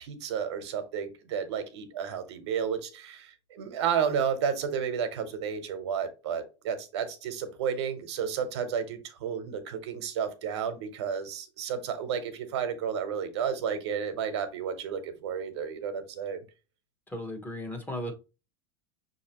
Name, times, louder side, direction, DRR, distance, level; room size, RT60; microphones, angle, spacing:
voice 1, 0.0-16.4, right 7 dB, 85° right, 9 dB, 1.0 m, -32 dB
voice 2, 17.1-18.1, left 1 dB, 15° left, 3 dB, 1.0 m, -36 dB
6.0 x 2.7 x 2.9 m, 0.31 s
supercardioid pair, 130°, 14 cm